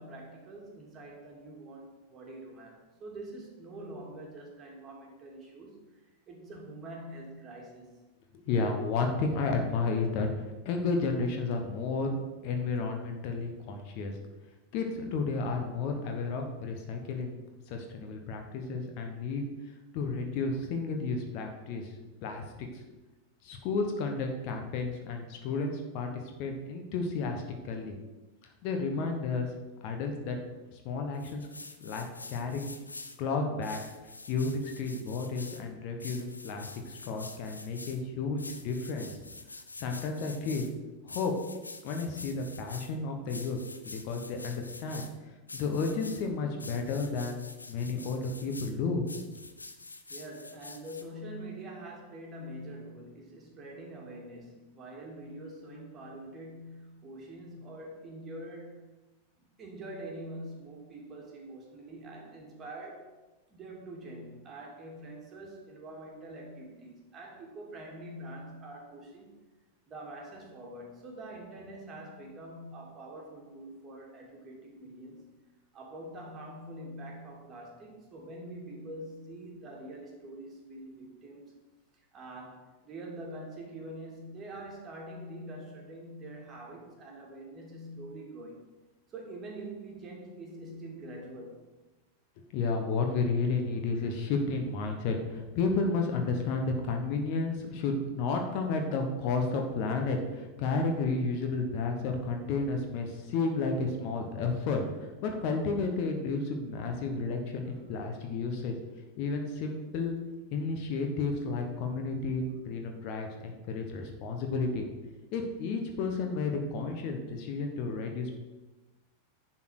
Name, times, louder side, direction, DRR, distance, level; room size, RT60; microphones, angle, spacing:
voice 1, 0.0-8.0 50.1-58.9 59.6-63.1 63.5-69.4 69.9-75.3 75.7-81.5 82.1-88.6 89.1-91.6 107.7-107.8, right 1 dB, 25° right, -1 dB, 2.5 m, -45 dB
voice 2, 8.4-12.1 12.4-14.1 14.7-17.4 17.7-19.4 19.9-21.9 22.2-22.8 23.4-28.0 28.6-29.5 29.8-30.4 30.7-31.5 31.8-32.7 33.2-33.8 34.3-39.1 39.8-40.7 41.0-41.3 41.8-43.6 43.8-45.1 45.5-47.4 47.7-49.1 92.5-108.7 109.2-110.2 110.5-114.8 115.3-118.3, left 4 dB, 45° left, 3 dB, 1.3 m, -32 dB
sound 1, 31.1-33.2 33.6-35.6 36.0-38.0 38.4-40.7 41.1-42.9 43.3-45.1 45.5-46.2 46.6-48.7 49.1-51.0, left 3 dB, 80° left, 0.7 m, -46 dB
10.5 x 4.4 x 6.3 m, 1.1 s
figure-of-eight pair, 90°, 0 cm